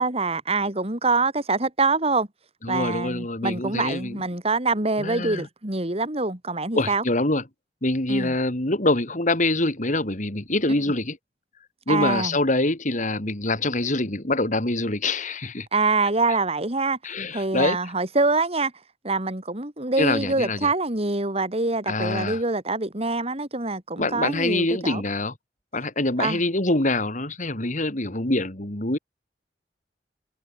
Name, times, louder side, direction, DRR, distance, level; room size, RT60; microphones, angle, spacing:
voice 1, 0.0-2.3 2.7-7.0 8.1-8.3 11.9-12.4 15.7-17.0 17.3-18.7 19.0-25.0 26.2-26.4, right 3 dB, 35° right, 3.8 m, -25 dB
voice 2, 2.6-4.2 5.0-5.5 6.7-7.4 7.8-11.2 11.9-15.7 17.0-17.9 20.0-20.7 21.9-22.4 24.0-25.3 25.7-29.0, left 2 dB, 45° left, 3.4 m, -25 dB
head